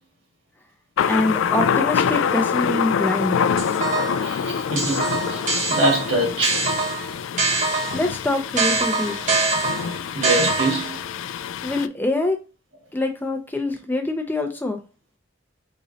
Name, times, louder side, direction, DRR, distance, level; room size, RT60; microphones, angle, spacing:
Thunder, 1.0-11.9, left 7 dB, 70° left, 0.3 m, -25 dB
voice 1, 1.0-3.4 7.9-9.2 11.6-12.4 12.9-14.8, left 2 dB, 10° left, 0.5 m, -24 dB
sound 1, 3.6-4.3 4.8-8.1 8.6-11.0, right 3 dB, 40° right, 1.1 m, -24 dB
voice 2, 4.2-5.4 5.7-6.6 10.1-11.0, right 1 dB, 70° right, 1.8 m, -24 dB
3.9 x 3.0 x 4.1 m
head